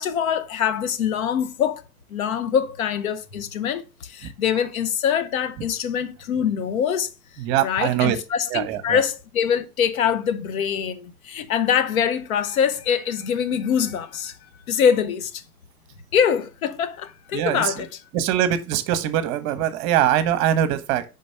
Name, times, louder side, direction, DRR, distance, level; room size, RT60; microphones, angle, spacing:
voice 1, 0.0-1.8 2.1-7.1 7.6-14.4 14.7-15.4 16.1-17.9, left 8 dB, 60° left, 1.0 m, -24 dB
voice 2, 7.4-8.2 8.5-9.0 17.3-17.7 18.1-21.0, right 11 dB, 35° right, 0.9 m, -22 dB
5.2 x 3.9 x 5.4 m
figure-of-eight pair, 95°, 47 cm